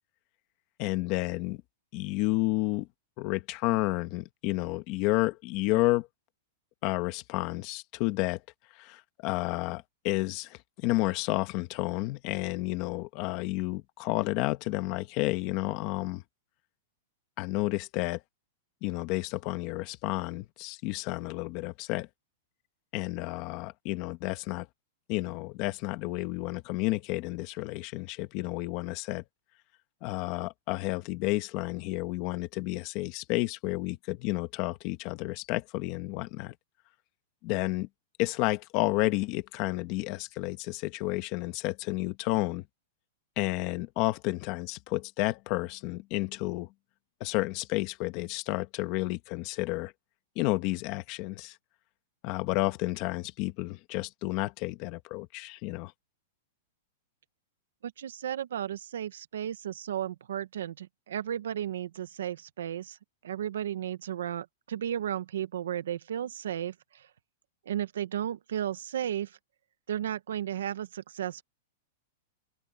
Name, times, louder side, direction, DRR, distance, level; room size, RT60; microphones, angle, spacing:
voice 1, 0.8-1.6 1.9-2.9 3.2-6.1 6.8-8.4 8.7-16.2 17.4-18.2 18.8-22.1 22.9-24.7 25.1-29.2 30.0-36.5 37.4-37.9 38.2-42.6 43.4-46.7 47.2-49.9 50.3-51.6 52.2-55.9, left 20 dB, 35° left, 1.4 m, -31 dB
voice 2, 57.8-63.0 63.2-67.1 67.7-69.4 69.9-71.4, right 10 dB, 90° right, 1.3 m, -34 dB
open air
supercardioid pair, 170°, 0 cm